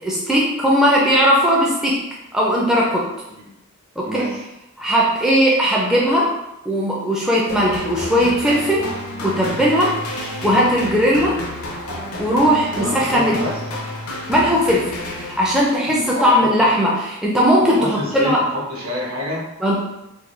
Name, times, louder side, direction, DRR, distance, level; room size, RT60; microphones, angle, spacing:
voice 1, 0.0-2.0 2.3-3.1 4.0-4.3 4.8-6.3 6.7-8.9 9.2-10.0 10.4-11.4 12.2-13.4 14.3-14.9 15.2-18.4 19.6-19.8, equal, 5° right, -5 dB, 0.3 m, -18 dB
voice 2, 4.0-4.4 12.8-13.6 15.8-16.7 17.6-19.4, left 1 dB, 75° right, -4 dB, 1.1 m, -27 dB
sound 1, 7.5-15.8, left 1 dB, 80° left, 0.7 m, -30 dB
3.5 x 2.2 x 3.1 m, 0.89 s
head